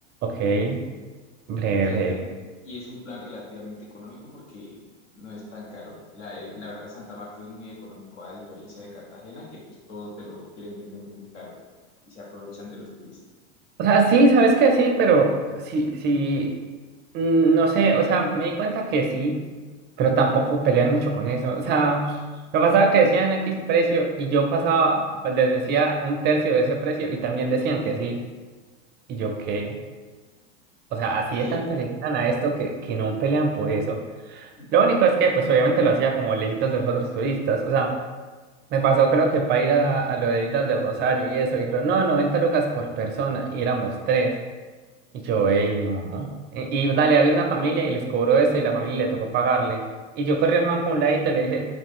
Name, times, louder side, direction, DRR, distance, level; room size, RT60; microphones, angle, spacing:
voice 1, 0.2-0.8 1.5-2.2 13.8-15.3 15.6-16.5 17.1-19.4 20.0-22.2 22.5-28.2 29.1-29.8 30.9-34.0 34.3-37.9 38.7-44.3 45.1-49.8 50.2-51.6, right 4 dB, 30° right, 3 dB, 0.4 m, -22 dB
voice 2, 1.8-2.2 2.6-4.8 5.1-11.5 12.0-13.2 31.4-31.6 34.6-34.7, left 2 dB, 85° left, -3 dB, 1.2 m, -40 dB
3.2 x 2.4 x 3.5 m, 1.3 s
hypercardioid pair, 110°, 34 cm